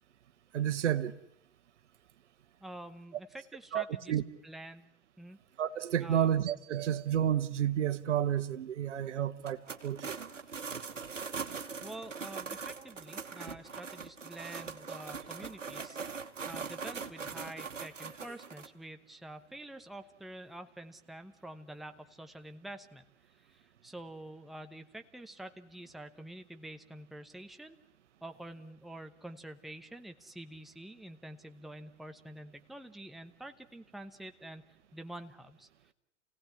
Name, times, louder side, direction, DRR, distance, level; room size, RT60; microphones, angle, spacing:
voice 1, 0.5-1.2 3.7-4.2 5.6-10.3, right 10 dB, 70° right, 1.2 m, -31 dB
voice 2, 2.6-4.9 5.2-5.4 6.0-6.3 11.8-16.0 16.5-23.0 23.3-27.8 28.2-35.9, right 1 dB, ahead, 1.0 m, -47 dB
sound 1, 9.4-18.7, right 5 dB, 85° right, 1.4 m, -41 dB
28.0 x 17.0 x 9.8 m
figure-of-eight pair, 95°, 37 cm